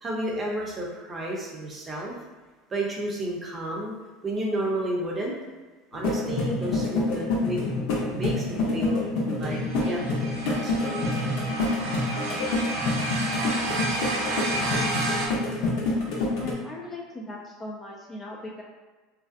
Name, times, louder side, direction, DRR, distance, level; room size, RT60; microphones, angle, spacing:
voice 1, 0.0-2.1 2.7-3.9 4.2-5.3 5.9-7.6 8.1-9.0 9.4-10.0 10.5-11.1, right 1 dB, 25° right, -3 dB, 0.6 m, -31 dB
sound 1, 5.9-16.5, left 2 dB, 70° left, 0.7 m, -27 dB
sound 2, 9.5-15.3, right 2 dB, 70° right, 0.6 m, -31 dB
voice 2, 16.4-18.6, left 2 dB, 20° left, -2 dB, 0.4 m, -38 dB
2.5 x 2.1 x 2.4 m, 1.3 s
supercardioid pair, 105°, 0 cm